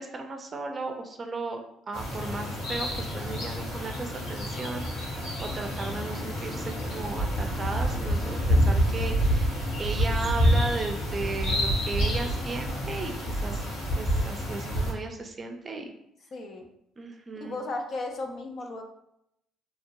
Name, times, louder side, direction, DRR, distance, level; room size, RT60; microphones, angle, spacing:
voice 1, 0.0-13.7 14.0-15.9 17.0-17.6, right 3 dB, 35° right, 4 dB, 0.5 m, -36 dB
sound 1, 1.9-14.9, equal, 90° left, 1.4 m, -28 dB
voice 2, 16.3-16.6 17.4-18.8, left 2 dB, 55° left, 3 dB, 0.5 m, -35 dB
2.8 x 2.5 x 2.9 m, 0.77 s
supercardioid pair, 80°, 0 cm